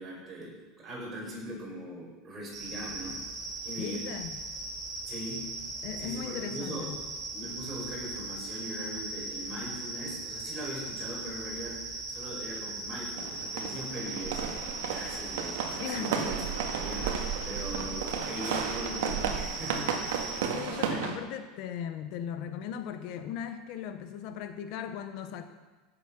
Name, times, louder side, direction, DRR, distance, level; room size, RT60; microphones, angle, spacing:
voice 1, 0.0-3.2 3.6-4.0 5.1-5.5 6.0-6.9 7.3-16.5 16.8-20.4, equal, 20° right, -4 dB, 5.7 m, -40 dB
sound 1, 2.5-20.5, right 2 dB, 40° right, 5.4 m, -39 dB
voice 2, 3.8-4.4 5.8-7.0 15.8-16.1 20.5-25.5, left 8 dB, 50° left, 8 dB, 1.0 m, -38 dB
sound 2, 13.2-21.2, right 7 dB, 90° right, 1.9 m, -33 dB
16.5 x 8.1 x 6.0 m, 1.3 s
supercardioid pair, 165°, 0 cm